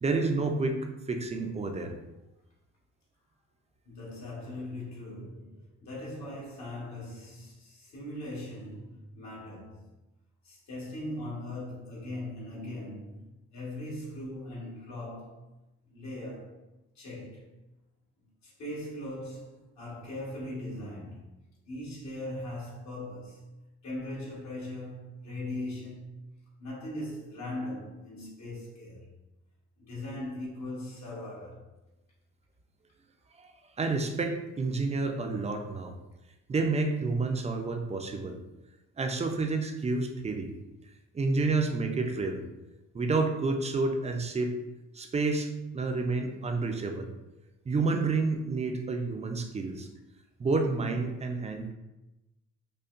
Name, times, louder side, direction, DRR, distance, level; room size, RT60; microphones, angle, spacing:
voice 1, 0.0-1.9 33.4-33.5 33.8-35.9 36.5-38.4 39.0-40.5 41.1-42.4 42.9-44.6 44.9-47.1 47.7-49.9 50.4-51.7, right 3 dB, 20° right, 0.5 m, -29 dB
voice 2, 3.9-9.9 10.4-13.2 13.5-15.5 15.9-16.6 16.9-17.5 18.4-21.4 21.6-23.4 23.8-26.2 26.6-29.1 29.8-31.7, left 1 dB, 65° left, 1.5 m, -40 dB
5.3 x 2.1 x 2.5 m
cardioid pair, 90°, 30 cm